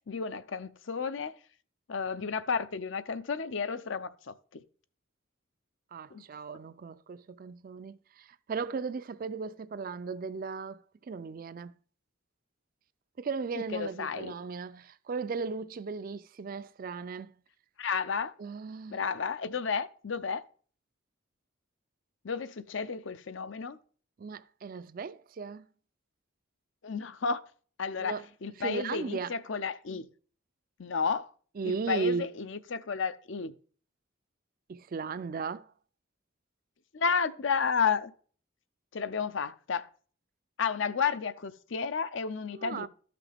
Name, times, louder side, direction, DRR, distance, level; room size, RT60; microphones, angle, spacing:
voice 1, 0.1-1.3 1.9-4.6 6.1-6.2 13.6-14.3 17.8-18.3 18.9-20.4 22.2-23.8 26.8-27.4 27.8-28.2 28.4-30.1 30.8-31.3 31.6-33.6 36.9-38.1 38.9-39.9 40.6-42.9, left 5 dB, 65° left, 0.6 m, -32 dB
voice 2, 5.9-11.7 13.2-17.3 18.4-19.0 24.2-25.7 28.0-28.3 28.6-29.3 31.6-32.3 34.7-35.7 42.5-42.9, right 5 dB, 45° right, 0.4 m, -36 dB
12.5 x 5.9 x 3.5 m
head